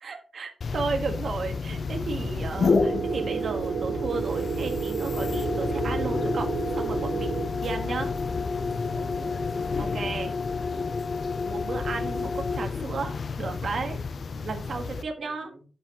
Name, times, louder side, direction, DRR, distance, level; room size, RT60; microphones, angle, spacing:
voice 1, 0.0-8.1 9.8-10.3 11.4-13.1 13.4-14.0 14.3-15.5, right 4 dB, 55° right, 5 dB, 1.4 m, -33 dB
sound 1, 0.6-15.0, left 4 dB, 50° left, 0.5 m, -30 dB
sound 2, 1.9-9.5, equal, 10° right, 4.1 m, -41 dB
sound 3, 2.6-7.5, right 7 dB, 85° right, 0.3 m, -31 dB
voice 2, 8.9-11.0 14.7-15.6, right 1 dB, 35° right, 3 dB, 1.8 m, -48 dB
7.7 x 6.9 x 2.9 m, 0.37 s
wide cardioid pair, 130°, 0 cm